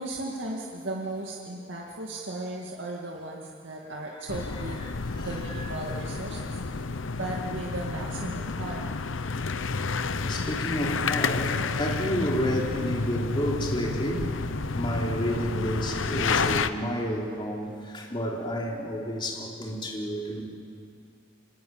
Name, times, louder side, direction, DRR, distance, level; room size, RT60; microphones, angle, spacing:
voice 1, 0.0-4.8 5.1-6.8 7.1-8.8, right 1 dB, 70° right, 2.3 m, -36 dB
sound 1, 4.3-16.7, left 4 dB, 80° left, 0.8 m, -30 dB
voice 2, 4.9-5.3 5.6-5.7 10.2-14.3 14.7-20.4, equal, 25° left, 3.5 m, -30 dB
25.0 x 21.0 x 8.9 m
head